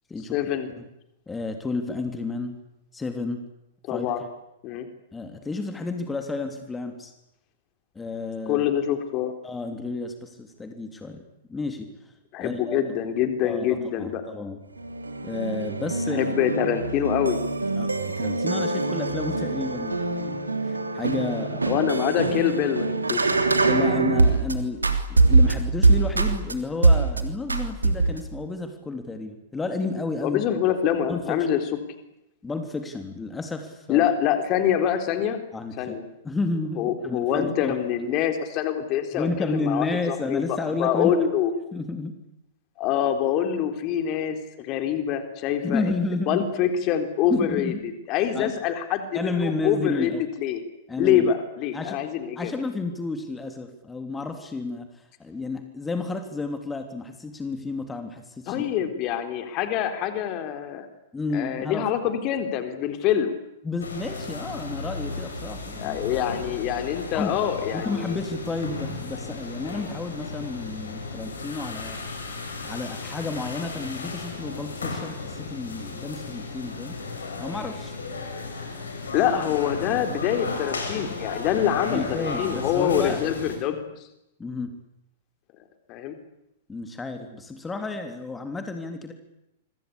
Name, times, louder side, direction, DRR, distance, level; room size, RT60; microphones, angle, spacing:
voice 1, 0.3-0.7 3.8-4.2 4.6-4.9 8.5-9.3 12.3-14.2 16.1-17.4 21.6-23.3 30.2-31.6 33.9-35.4 35.8-36.0 36.8-41.5 42.8-45.9 46.3-50.1 50.4-50.6 51.0-52.5 58.5-60.9 61.3-63.4 65.8-68.2 79.1-83.8 85.9-86.2, left 9 dB, 35° left, 7 dB, 3.9 m, -25 dB
voice 2, 1.3-2.6 2.9-3.4 3.9-4.1 5.1-7.1 7.9-8.6 9.4-11.2 11.5-11.9 12.4-12.8 13.4-14.6 15.2-16.3 17.8-21.6 22.2-22.4 23.6-30.4 31.1-31.4 32.4-34.1 35.5-36.0 36.2-37.8 39.1-41.1 41.7-42.2 45.6-46.4 47.3-47.8 48.3-48.6 49.1-50.2 50.9-51.3 51.7-52.1 52.3-58.7 61.1-61.8 63.6-66.0 67.1-67.3 67.7-72.0 72.6-77.0 77.4-78.0 81.9-83.2 84.4-84.7 86.7-89.1, left 3 dB, 10° left, 6 dB, 3.3 m, -31 dB
sound 1, 14.8-24.5 24.8-26.5 26.8-27.2 27.5-28.3, right 3 dB, 80° right, 3.3 m, -23 dB
sound 2, 63.8-83.6, left 3 dB, 70° left, 7.9 m, -34 dB
27.0 x 25.5 x 8.6 m, 0.83 s
figure-of-eight pair, 100°, 0 cm